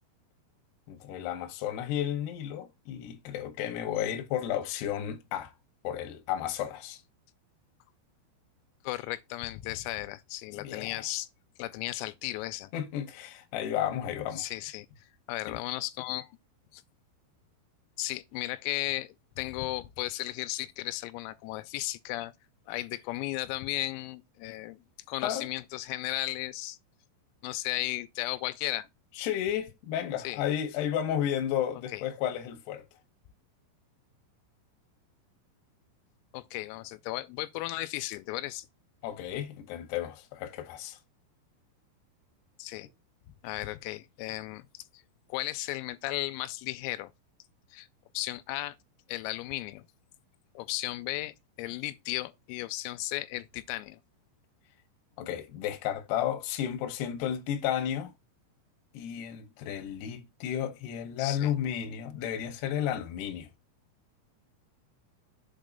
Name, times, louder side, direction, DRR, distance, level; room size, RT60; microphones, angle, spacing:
voice 1, 0.9-5.5 5.8-7.0 10.5-11.0 12.7-14.5 15.5-15.6 25.2-25.5 29.2-32.9 39.0-41.0 55.2-58.1 58.9-63.5, left 10 dB, 75° left, 2.5 m, -33 dB
voice 2, 8.8-11.3 11.6-12.7 14.4-16.4 16.7-16.8 18.0-22.3 22.7-26.8 27.4-28.9 30.2-30.4 31.9-32.0 36.3-38.7 42.6-42.9 43.4-45.0 45.3-47.1 47.7-47.9 48.1-48.8 49.1-49.9 50.6-54.0 61.2-61.5, left 17 dB, 90° left, 3.3 m, -35 dB
7.4 x 3.1 x 5.2 m
omnidirectional pair, 6.0 m